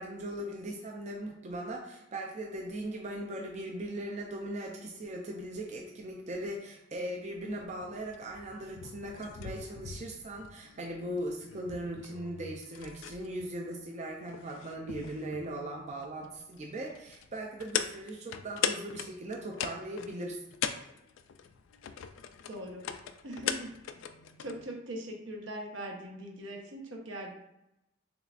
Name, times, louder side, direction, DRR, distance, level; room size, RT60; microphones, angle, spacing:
voice 1, 0.0-20.4, right 1 dB, 35° right, 0 dB, 0.4 m, -39 dB
sound 1, 7.4-24.6, left 8 dB, 80° left, 0.3 m, -41 dB
voice 2, 22.5-22.8 23.2-23.7 24.4-27.3, right 1 dB, 75° right, 1 dB, 0.9 m, -41 dB
6.7 x 2.4 x 2.4 m, 0.88 s
head